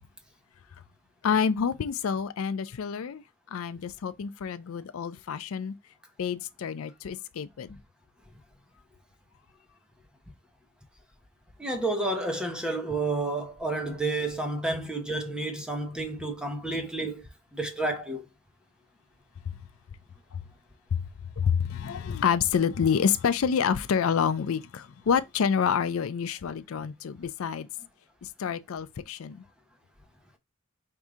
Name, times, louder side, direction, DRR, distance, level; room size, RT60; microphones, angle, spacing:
voice 1, 1.2-3.2 3.5-5.7 6.2-7.7 20.3-20.4 20.9-21.0 21.4-27.7 28.4-29.4, left 7 dB, 80° left, 0.4 m, -28 dB
voice 2, 11.6-17.2 17.5-18.2, right 2 dB, 5° right, 0.8 m, -30 dB
4.7 x 2.7 x 3.6 m
head